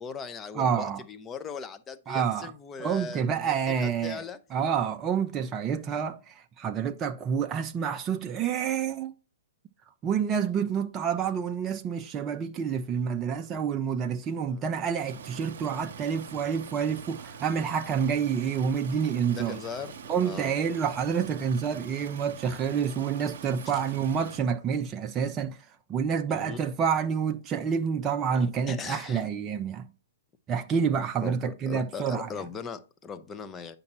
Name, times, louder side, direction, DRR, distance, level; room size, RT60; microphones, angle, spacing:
voice 1, 0.0-4.4 12.9-13.1 14.5-14.6 19.3-20.5 23.7-23.8 26.3-26.6 28.3-29.2 31.2-33.8, left 6 dB, 20° left, 0.6 m, -39 dB
voice 2, 0.6-1.0 2.1-2.5 2.8-4.2 4.5-9.1 10.0-19.6 20.1-29.9 30.5-32.3, right 7 dB, 25° right, 0.4 m, -28 dB
Stream, 15.1-24.4, right 6 dB, 60° right, 0.9 m, -44 dB
9.5 x 5.2 x 2.9 m
figure-of-eight pair, 115°, 0 cm